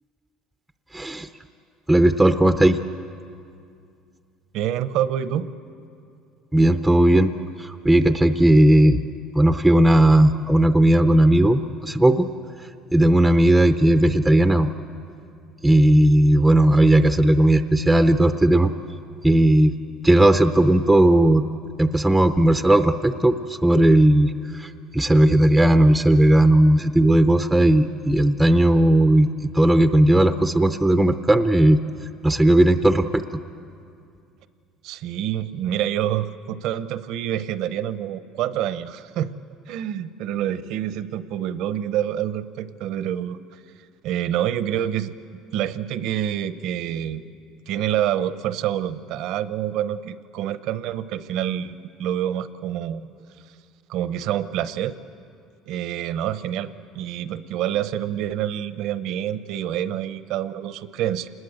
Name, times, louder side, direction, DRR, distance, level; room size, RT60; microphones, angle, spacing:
voice 1, 0.9-1.3 1.9-2.8 6.5-7.3 7.6-9.0 9.3-12.3 12.9-14.7 15.6-18.7 19.2-19.8 20.0-21.4 21.8-31.8 32.2-33.2, right 1 dB, 5° right, 8 dB, 0.6 m, -16 dB
voice 2, 4.5-5.5 34.8-39.3 39.7-43.6 44.0-45.1 45.5-47.2 47.7-53.1 53.9-54.9 55.7-56.7 56.9-61.3, right 11 dB, 65° right, 13 dB, 0.8 m, -27 dB
27.0 x 20.5 x 8.0 m, 2.4 s
cardioid pair, 145°, 0 cm